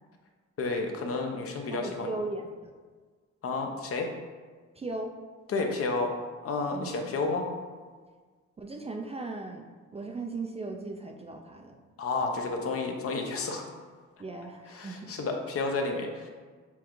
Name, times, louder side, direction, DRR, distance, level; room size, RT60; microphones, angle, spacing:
voice 1, 0.6-2.1 3.4-4.1 5.5-6.1 6.4-7.5 12.0-13.7 14.7-16.3, left 3 dB, 50° left, 3 dB, 0.7 m, -31 dB
voice 2, 1.7-2.7 4.7-5.1 6.7-6.9 8.6-9.7 9.9-11.8 14.2-15.1, right 3 dB, 20° right, 2 dB, 0.4 m, -37 dB
7.0 x 2.4 x 3.0 m, 1.5 s
cardioid pair, 90°, 30 cm